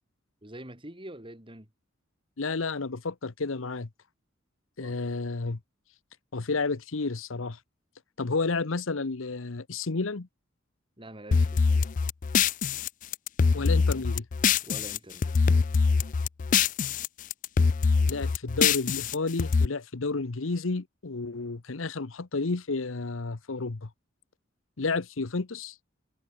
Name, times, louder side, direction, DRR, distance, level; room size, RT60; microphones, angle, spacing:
voice 1, 0.4-1.7 4.8-5.0 11.0-11.9 14.6-15.3, right 1 dB, 25° right, 5.2 m, -45 dB
voice 2, 2.4-3.9 4.8-5.6 6.3-7.6 8.2-10.3 13.5-14.3 18.0-23.9 24.8-25.7, left 3 dB, 85° left, 1.0 m, -31 dB
sound 1, 11.3-15.0 15.2-17.1 17.3-19.6, left 5 dB, 40° left, 0.4 m, -24 dB
head